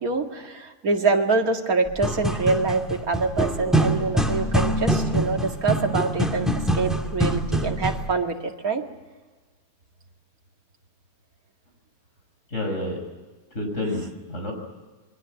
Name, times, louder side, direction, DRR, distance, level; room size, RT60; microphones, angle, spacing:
voice 1, 0.0-8.8, right 4 dB, 60° right, 3 dB, 2.6 m, -25 dB
sound 1, 1.9-8.1, right 1 dB, ahead, 2.1 m, -24 dB
voice 2, 12.5-13.0 13.5-14.5, left 1 dB, 45° left, 3 dB, 6.6 m, -29 dB
27.5 x 22.5 x 7.8 m, 1.3 s
omnidirectional pair, 1.7 m